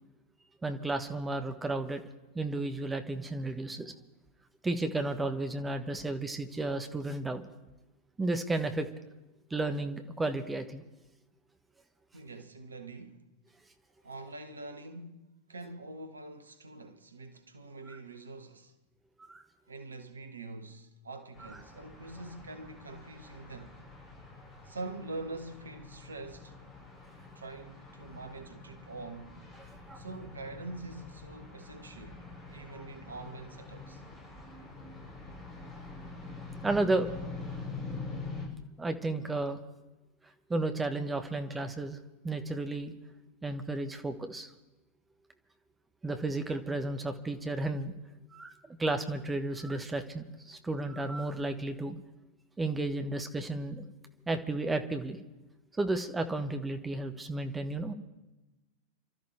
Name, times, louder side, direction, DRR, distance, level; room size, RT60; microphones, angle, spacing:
voice 1, 0.6-2.0 2.3-3.9 4.6-7.4 8.2-8.9 9.5-10.8 19.3-19.4 29.9-30.0 36.6-37.1 38.8-39.6 40.5-42.0 42.2-42.9 43.4-44.5 46.0-47.9 48.3-52.0 52.6-53.9 54.3-55.2 55.8-57.9, right 2 dB, 10° right, 1.3 m, -33 dB
voice 2, 12.1-13.2 14.0-18.7 19.7-23.8 24.6-26.6 27.3-29.4 29.9-32.2 32.5-34.0, right 2 dB, 75° right, 1.5 m, -44 dB
sound 1, 21.3-38.5, left 3 dB, 30° left, 7.2 m, -45 dB
29.0 x 13.0 x 3.4 m
figure-of-eight pair, 90°, 0 cm